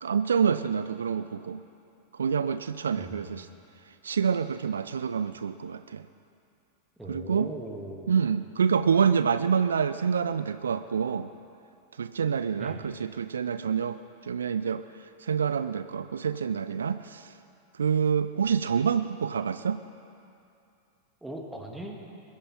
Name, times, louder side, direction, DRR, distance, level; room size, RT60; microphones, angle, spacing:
voice 1, 0.0-1.6 2.1-3.5 4.0-6.0 7.1-7.5 8.1-11.3 12.0-14.8 15.2-17.3 17.8-19.8, right 6 dB, 70° right, 12 dB, 0.4 m, -27 dB
voice 2, 3.0-3.4 7.0-8.1 12.6-12.8 21.2-22.0, right 1 dB, 5° right, 0 dB, 1.9 m, -39 dB
21.5 x 12.5 x 4.3 m, 2.6 s
figure-of-eight pair, 90°, 0 cm